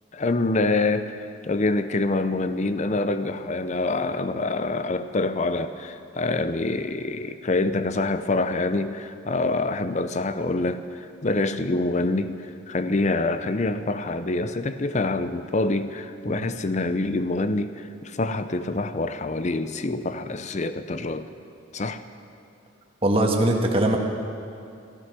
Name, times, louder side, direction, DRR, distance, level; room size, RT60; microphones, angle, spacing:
voice 1, 0.1-21.3 21.7-22.0, left 2 dB, 35° left, 11 dB, 0.6 m, -26 dB
voice 2, 23.0-24.0, right 1 dB, 30° right, 1 dB, 1.5 m, -21 dB
14.5 x 14.0 x 6.1 m, 2.6 s
head